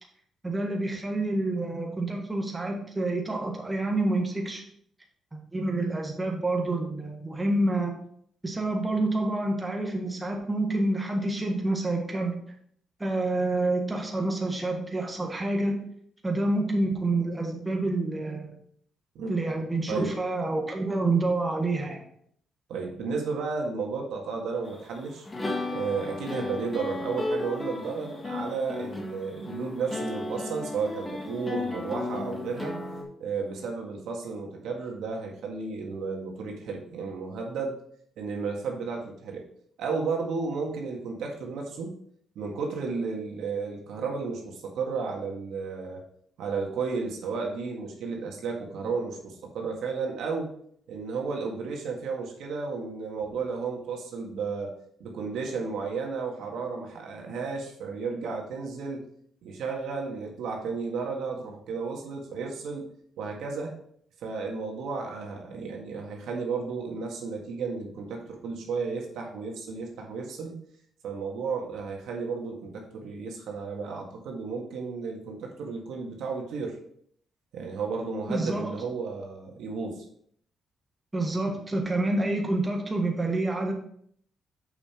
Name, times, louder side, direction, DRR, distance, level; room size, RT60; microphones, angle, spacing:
voice 1, 0.4-4.6 5.3-7.9 8.4-12.4 13.0-15.8 16.2-18.5 19.3-22.0 78.3-78.8 81.1-83.7, right 2 dB, 15° right, 1 dB, 1.6 m, -28 dB
voice 2, 22.7-25.3 25.7-32.7 33.2-37.8 38.2-39.4 39.8-41.9 42.4-46.0 46.4-50.5 50.9-54.7 55.0-59.1 59.4-62.8 63.2-63.8 64.2-70.6 71.0-76.8 77.5-80.1, right 4 dB, 80° right, 1 dB, 1.8 m, -33 dB
sound 1, 24.7-33.0, left 2 dB, 25° left, 1.5 m, -34 dB
6.9 x 5.6 x 4.4 m, 0.64 s
cardioid pair, 90°, 0 cm